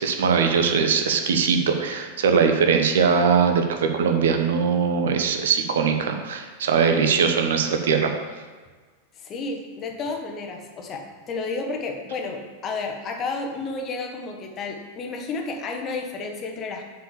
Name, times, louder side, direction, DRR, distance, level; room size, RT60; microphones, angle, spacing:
voice 1, 0.0-8.1, right 6 dB, 60° right, 5 dB, 1.0 m, -21 dB
voice 2, 9.1-16.8, left 3 dB, 30° left, 3 dB, 1.3 m, -31 dB
7.6 x 4.9 x 7.3 m, 1.4 s
figure-of-eight pair, 90°, 0 cm